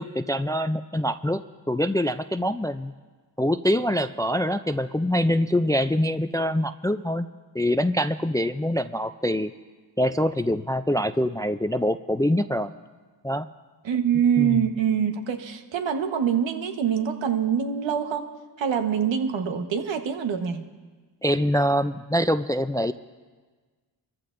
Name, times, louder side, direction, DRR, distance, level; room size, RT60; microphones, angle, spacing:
voice 1, 0.0-2.9 3.4-7.3 7.5-9.5 10.0-12.7 13.2-13.5 14.4-14.7 21.2-22.9, equal, 10° left, 11 dB, 0.3 m, -24 dB
voice 2, 13.8-18.3 18.6-20.7, right 8 dB, 75° right, 6 dB, 1.3 m, -25 dB
23.5 x 14.5 x 2.6 m, 1.4 s
cardioid pair, 75°, 45 cm